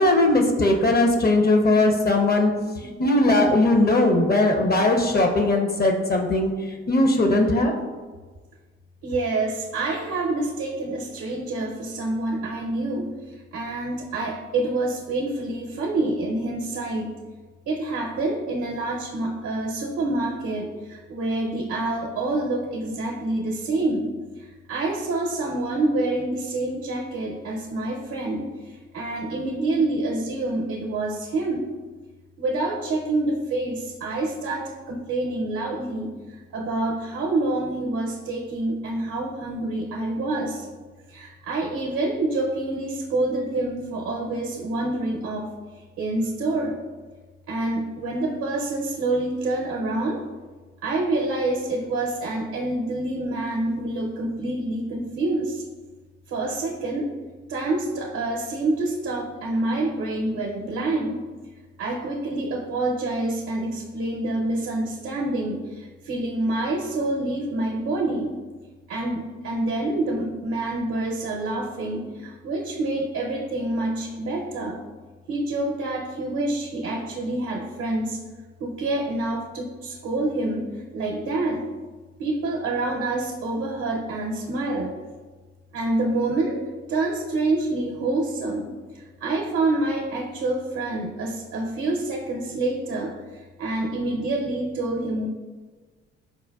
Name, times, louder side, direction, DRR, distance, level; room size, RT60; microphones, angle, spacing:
voice 1, 0.0-2.5 2.8-6.5 6.9-7.7, left 2 dB, 35° left, 3 dB, 0.5 m, -19 dB
voice 2, 9.0-17.1 17.7-24.1 24.4-31.7 32.4-40.7 41.1-46.8 47.5-50.2 50.8-55.6 56.3-57.1 57.5-61.2 61.8-68.3 68.9-74.8 75.3-78.2 78.6-81.6 82.2-84.9 85.7-86.6 86.9-88.7 88.9-95.3, right 2 dB, 65° right, -1 dB, 0.6 m, -27 dB
5.2 x 2.2 x 2.2 m, 1.4 s
supercardioid pair, 50°, 30 cm